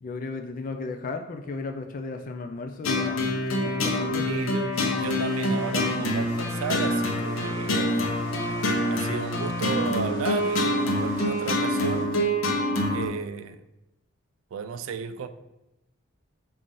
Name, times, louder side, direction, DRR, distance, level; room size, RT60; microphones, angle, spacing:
voice 1, 0.0-3.3 3.5-4.3 9.1-9.2, left 3 dB, 40° left, 0.3 m, -35 dB
sound 1, 2.8-13.1, left 1 dB, 80° left, 0.7 m, -26 dB
voice 2, 4.3-8.0 8.3-12.2 12.9-13.6 14.5-15.3, right 6 dB, 80° right, 0.3 m, -34 dB
sound 2, 4.7-12.0, equal, 20° left, 1.2 m, -45 dB
5.6 x 2.5 x 3.7 m
head